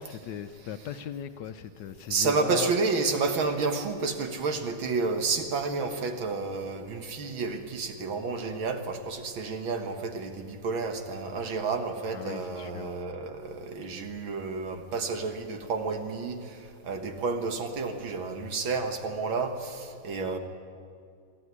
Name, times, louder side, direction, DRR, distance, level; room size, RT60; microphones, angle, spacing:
voice 1, 0.0-2.7 12.1-12.9, left 9 dB, 70° left, 10 dB, 1.2 m, -38 dB
voice 2, 2.1-20.4, right 4 dB, 75° right, 6 dB, 2.3 m, -30 dB
24.0 x 12.5 x 9.7 m, 2.3 s
omnidirectional pair, 2.2 m